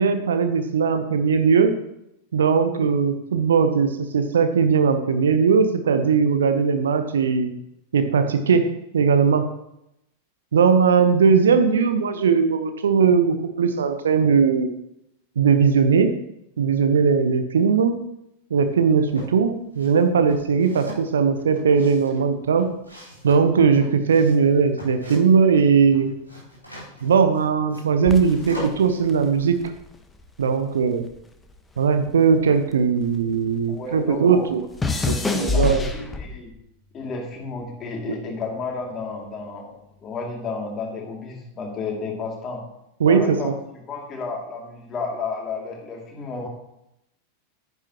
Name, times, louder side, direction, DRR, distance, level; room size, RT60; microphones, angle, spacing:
voice 1, 0.0-1.7 2.3-7.5 7.9-9.5 10.5-14.7 15.4-16.2 16.6-18.0 18.5-22.7 23.2-26.1 27.0-29.6 30.4-31.1 31.8-34.6 35.1-35.9 43.0-43.5, right 6 dB, 65° right, 9 dB, 0.8 m, -19 dB
sound 1, 18.6-19.4 19.7-25.5 25.8-29.0, equal, 85° right, 4.1 m, -40 dB
sound 2, 28.0-30.6 30.8-33.5 33.8-36.6 37.3-37.7, left 3 dB, 10° left, 1.0 m, -28 dB
voice 2, 33.7-34.5 35.3-36.5 36.9-39.7 40.0-42.6 43.0-46.5, left 4 dB, 25° left, 0 dB, 2.5 m, -32 dB
10.5 x 9.8 x 2.9 m, 0.82 s
figure-of-eight pair, 90°, 0 cm